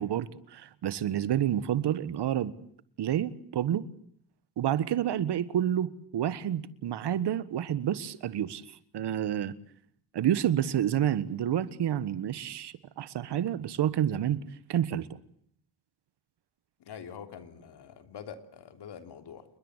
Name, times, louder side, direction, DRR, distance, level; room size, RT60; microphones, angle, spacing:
voice 1, 0.0-2.5 3.0-3.8 4.6-8.6 8.9-9.5 10.1-14.4 14.7-15.1, right 10 dB, 80° right, 1.6 m, -29 dB
voice 2, 16.8-19.4, left 7 dB, 80° left, 3.3 m, -45 dB
29.5 x 21.5 x 8.2 m
wide cardioid pair, 165°, 40 cm